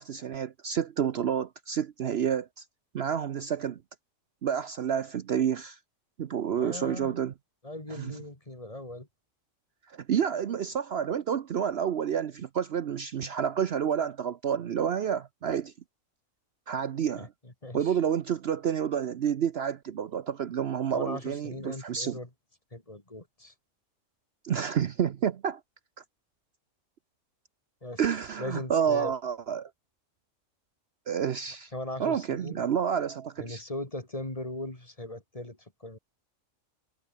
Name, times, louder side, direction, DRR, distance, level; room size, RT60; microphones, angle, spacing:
voice 1, 0.0-2.6 2.9-3.8 4.4-5.8 6.2-7.3 7.9-8.2 9.9-15.7 16.7-17.3 17.7-22.2 24.4-25.6 28.0-29.7 31.1-31.7 32.0-33.6, right 8 dB, 55° right, 0.9 m, -29 dB
voice 2, 6.6-7.1 7.6-9.1 17.2-17.9 20.9-22.3 22.7-23.5 27.8-28.0 28.4-29.1 31.7-32.7 33.4-36.0, left 1 dB, 25° left, 3.3 m, -39 dB
omnidirectional pair, 1.3 m